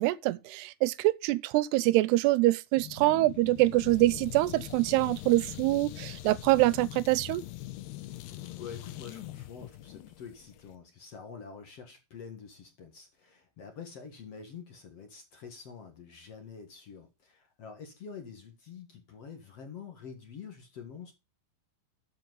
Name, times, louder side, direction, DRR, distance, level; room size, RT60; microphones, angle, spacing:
voice 1, 0.0-7.4, right 18 dB, 85° right, 2.8 m, -25 dB
sound 1, 2.8-10.8, left 14 dB, 85° left, 3.0 m, -43 dB
voice 2, 8.6-21.1, left 6 dB, 50° left, 2.1 m, -46 dB
13.0 x 7.6 x 3.9 m
omnidirectional pair, 4.6 m